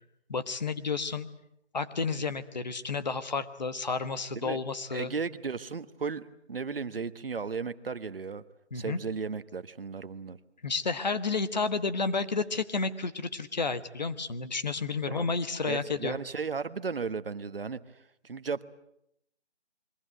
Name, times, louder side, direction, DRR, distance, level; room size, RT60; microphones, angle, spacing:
voice 1, 0.3-1.3 1.7-5.1 8.7-9.0 10.6-16.2, left 4 dB, 40° left, 12 dB, 1.3 m, -31 dB
voice 2, 4.9-8.4 8.7-10.4 15.1-15.3 15.7-18.6, right 5 dB, 55° right, 13 dB, 1.2 m, -35 dB
28.0 x 22.5 x 7.7 m, 0.76 s
figure-of-eight pair, 170°, 34 cm